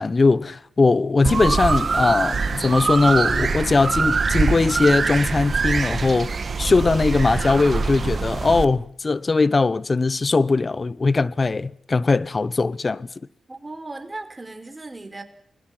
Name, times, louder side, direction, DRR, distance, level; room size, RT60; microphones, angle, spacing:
voice 1, 0.0-13.1, left 3 dB, 45° left, 0.9 m, -20 dB
sound 1, 1.2-8.7, right 4 dB, 55° right, 1.6 m, -23 dB
voice 2, 13.5-15.2, right 2 dB, 25° right, 4.3 m, -36 dB
30.0 x 21.0 x 5.8 m
cardioid pair, 50°, 0 cm